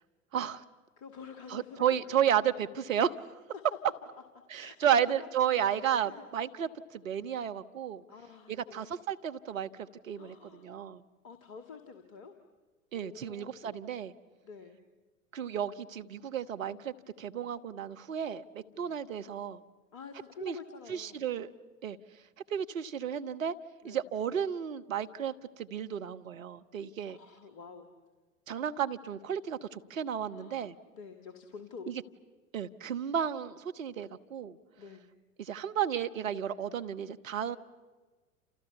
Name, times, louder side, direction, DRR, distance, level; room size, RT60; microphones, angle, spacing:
voice 1, 0.3-0.6 1.5-3.3 4.5-8.0 8.5-11.0 12.9-14.1 15.3-19.6 20.4-20.6 20.9-21.5 21.8-22.0 22.5-23.5 23.8-27.2 28.5-30.7 31.9-32.0 32.5-34.6 35.4-37.6, right 9 dB, 65° right, 9 dB, 1.3 m, -33 dB
voice 2, 1.0-2.0 3.5-3.9 4.5-5.3 5.7-6.3 8.1-8.9 10.1-10.7 11.2-12.3 12.9-13.8 14.4-14.8 18.7-19.0 19.9-21.2 23.8-24.0 27.1-27.9 30.3-31.9 34.8-35.1, left 5 dB, 40° left, 7 dB, 2.2 m, -48 dB
29.5 x 28.5 x 6.9 m, 1.3 s
figure-of-eight pair, 90°, 43 cm